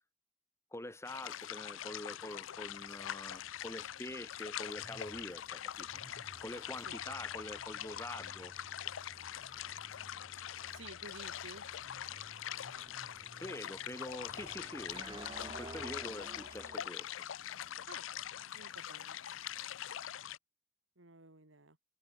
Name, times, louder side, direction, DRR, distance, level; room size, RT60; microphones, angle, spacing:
voice 1, 0.7-5.9 6.4-8.5 13.4-17.1, left 1 dB, 15° left, 2.6 m, -46 dB
sound 1, 1.0-20.4, left 11 dB, 85° left, 0.5 m, -43 dB
sound 2, 1.8-16.9, right 2 dB, 25° right, 1.4 m, -54 dB
sound 3, 2.6-18.4, right 1 dB, 50° right, 6.5 m, -72 dB
voice 2, 10.7-11.6 17.9-18.0 18.5-19.2 21.0-21.8, right 3 dB, 80° right, 2.8 m, -53 dB
head